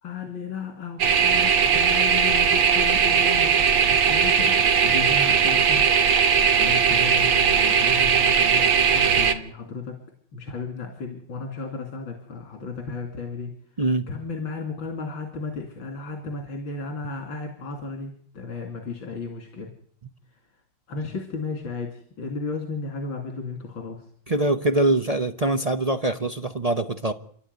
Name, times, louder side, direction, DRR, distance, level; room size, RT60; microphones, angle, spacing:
voice 1, 0.0-5.9 6.3-10.0 10.3-13.6 14.1-19.7 20.9-24.1, left 4 dB, 90° left, 3 dB, 3.4 m, -34 dB
sound 1, 1.0-9.3, right 6 dB, 85° right, 2.2 m, -19 dB
voice 2, 24.3-27.1, right 2 dB, 35° right, 6 dB, 0.6 m, -23 dB
29.5 x 12.0 x 9.5 m, 0.63 s
omnidirectional pair, 2.1 m